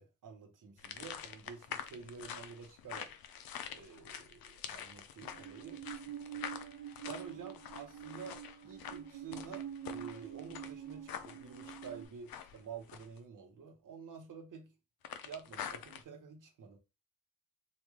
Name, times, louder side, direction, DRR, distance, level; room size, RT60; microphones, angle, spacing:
voice 1, 0.0-3.1 3.7-5.8 7.1-8.4 8.7-14.7 15.2-16.8, right 6 dB, 65° right, 0.9 m, -49 dB
sound 1, 0.8-13.2 15.0-16.0, left 8 dB, 85° left, 0.5 m, -46 dB
Musical instrument, 5.2-12.1, right 10 dB, 25° right, 0.8 m, -46 dB
3.1 x 2.5 x 3.6 m
wide cardioid pair, 130°, 35 cm